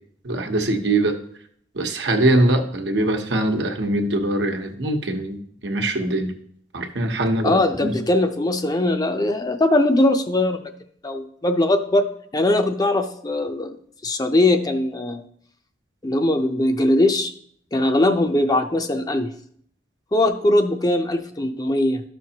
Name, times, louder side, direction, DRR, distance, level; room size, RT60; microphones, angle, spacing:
voice 1, 0.2-1.2 1.7-6.3 6.7-7.9, right 1 dB, 75° right, 4 dB, 1.0 m, -22 dB
voice 2, 7.4-10.7 11.0-12.1 12.3-13.8 14.0-15.2 16.0-17.3 17.7-19.3 20.1-22.0, left 1 dB, 20° left, 6 dB, 0.5 m, -20 dB
12.5 x 6.0 x 2.8 m, 0.64 s
head